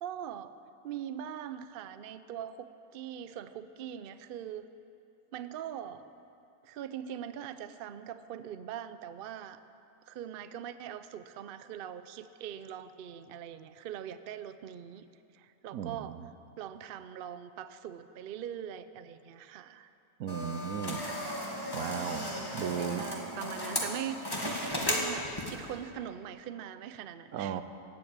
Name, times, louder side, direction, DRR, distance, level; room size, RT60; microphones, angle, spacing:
voice 1, 0.0-0.5 0.8-4.7 5.3-6.1 6.6-9.6 10.1-15.1 15.3-16.2 16.6-19.9 22.1-27.6, right 9 dB, 60° right, 12 dB, 0.6 m, -42 dB
voice 2, 15.7-16.2 20.2-21.0 21.7-22.3 22.5-23.1 27.3-27.6, right 9 dB, 85° right, 11 dB, 1.2 m, -35 dB
sound 1, 20.3-25.7, left 1 dB, 15° left, 1.7 m, -35 dB
16.0 x 7.9 x 8.7 m, 2.8 s
omnidirectional pair, 1.5 m